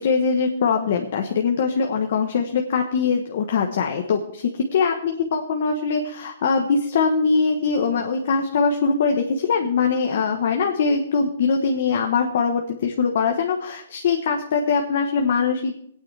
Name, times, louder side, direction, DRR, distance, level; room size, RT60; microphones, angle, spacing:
voice 1, 0.0-15.7, left 5 dB, 45° left, 3 dB, 1.1 m, -22 dB
20.0 x 9.1 x 3.4 m, 0.70 s
hypercardioid pair, 175°, 0 cm